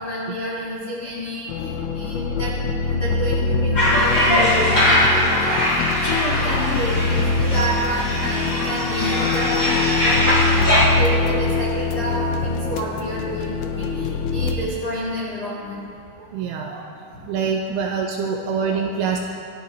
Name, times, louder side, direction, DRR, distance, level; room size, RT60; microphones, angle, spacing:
voice 1, 0.0-2.5 2.8-5.6 6.0-10.4 10.7-15.8, equal, 70° left, -6 dB, 0.9 m, -29 dB
sound 1, 1.5-14.6, left 3 dB, 90° left, 3.4 m, -24 dB
sound 2, 3.8-10.9, left 1 dB, 20° left, 3.3 m, -21 dB
voice 2, 16.2-16.9 17.3-19.2, right 6 dB, 80° right, 1 dB, 2.8 m, -25 dB
26.0 x 11.0 x 3.1 m, 2.6 s
omnidirectional pair, 5.8 m